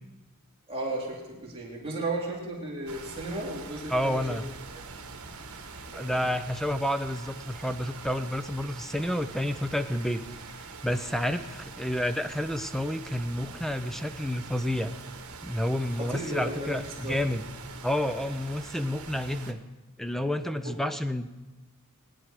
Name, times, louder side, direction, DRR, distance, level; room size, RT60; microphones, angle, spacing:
voice 1, 0.7-4.4 5.9-6.3 16.0-17.2 20.6-20.7, right 2 dB, 25° right, -3 dB, 2.5 m, -35 dB
sound 1, 2.9-19.5, right 4 dB, 75° right, 1.3 m, -44 dB
voice 2, 3.9-4.5 5.9-10.2 10.8-14.9 15.4-17.4 17.8-19.6 20.0-21.3, left 1 dB, ahead, 10 dB, 0.6 m, -30 dB
19.5 x 10.5 x 4.9 m, 1.1 s
head